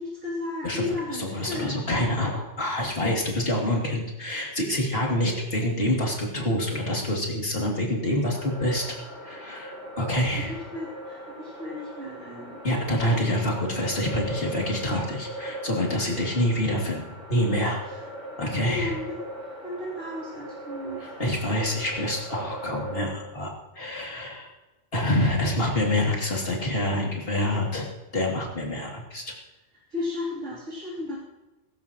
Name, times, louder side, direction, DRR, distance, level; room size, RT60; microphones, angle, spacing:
voice 1, 0.0-1.8 10.5-12.6 17.9-18.0 18.6-19.2 19.4-21.0 29.2-29.4 29.9-31.2, left 2 dB, 80° right, -7 dB, 3.7 m, -34 dB
voice 2, 1.2-8.8 9.2-10.5 12.6-17.0 17.3-17.8 18.4-18.9 21.0-24.5 24.9-27.9 28.1-29.3, left 1 dB, 50° left, -2 dB, 3.1 m, -26 dB
sound 1, 8.3-23.0, right 1 dB, 75° left, 6.1 m, -39 dB
18.5 x 15.5 x 3.1 m, 1.1 s
omnidirectional pair, 1.2 m